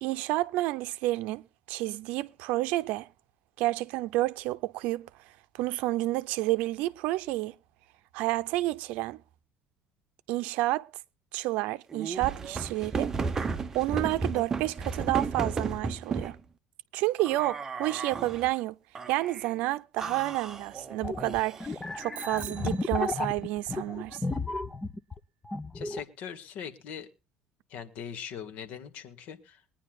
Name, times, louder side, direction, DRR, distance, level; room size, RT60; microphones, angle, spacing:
voice 1, 0.0-3.1 3.6-5.1 5.5-7.5 8.1-9.2 10.3-10.9 11.3-13.1 13.7-16.4 16.9-18.8 19.1-24.2, right 18 dB, 70° right, 0.6 m, -30 dB
sound 1, 11.9-16.4 17.2-18.5 18.9-19.5 20.0-21.8, right 4 dB, 20° right, 0.9 m, -34 dB
sound 2, 21.0-25.2 25.4-26.0, left 3 dB, 10° left, 0.7 m, -33 dB
Bicycle bell, 22.1-23.7, right 9 dB, 50° right, 1.1 m, -46 dB
voice 2, 25.7-27.1 27.7-29.6, left 8 dB, 65° left, 1.8 m, -41 dB
22.5 x 9.9 x 2.4 m
cardioid pair, 145°, 2 cm